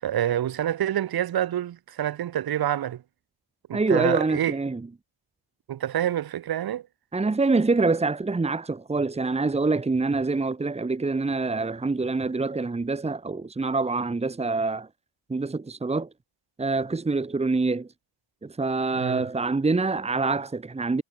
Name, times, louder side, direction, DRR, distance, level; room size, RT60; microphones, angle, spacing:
voice 1, 0.0-3.0 3.7-4.6 5.7-6.9 18.9-19.3, right 11 dB, 45° right, 7.0 m, -27 dB
voice 2, 3.7-4.8 7.1-14.9 15.3-16.1 16.6-17.9 18.4-21.0, right 3 dB, 10° right, 3.2 m, -25 dB
cardioid pair, 170°, 49 cm